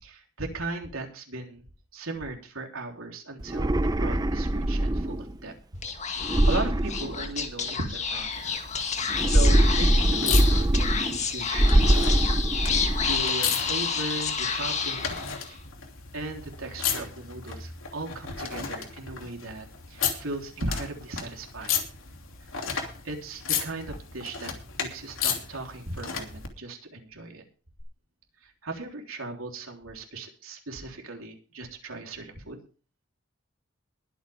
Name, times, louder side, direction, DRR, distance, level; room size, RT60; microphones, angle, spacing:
voice 1, 0.0-1.6 1.9-5.5 6.0-8.4 9.2-12.4 13.0-15.6 16.1-21.8 22.5-22.6 23.0-24.5 24.8-27.4 28.4-32.6, right 2 dB, 90° right, 2 dB, 3.6 m, -37 dB
sound 1, 3.4-5.3 6.2-7.7 9.1-11.2 11.5-13.2, right 1 dB, 20° right, 0.7 m, -23 dB
Speech / Whispering, 5.8-15.6, left 6 dB, 35° left, 1.9 m, -30 dB
sound 2, 8.3-26.5 27.8-27.9, left 7 dB, 85° left, 2.9 m, -35 dB
21.5 x 8.7 x 3.6 m, 0.38 s
head